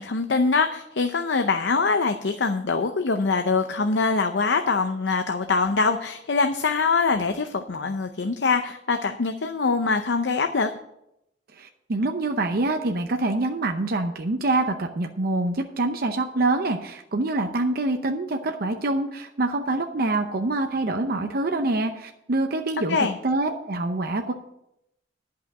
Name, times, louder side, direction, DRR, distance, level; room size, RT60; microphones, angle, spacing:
voice 1, 0.0-10.7 22.9-23.2, left 4 dB, 70° left, 6 dB, 0.6 m, -23 dB
voice 2, 11.5-23.0 23.2-24.3, right 2 dB, 55° right, 4 dB, 0.7 m, -25 dB
11.0 x 5.7 x 7.7 m, 0.82 s
head